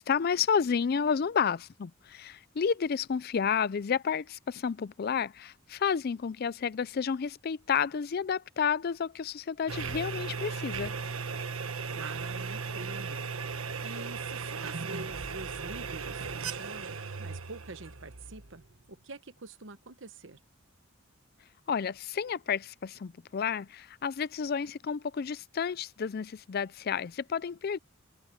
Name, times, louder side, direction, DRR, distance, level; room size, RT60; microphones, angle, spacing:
voice 1, 0.0-11.0 21.7-27.8, left 6 dB, 50° left, 0.4 m, -31 dB
sound 1, 9.7-18.8, right 5 dB, 85° right, 1.4 m, -37 dB
voice 2, 11.9-18.6 18.9-20.4, right 3 dB, 65° right, 1.1 m, -46 dB
head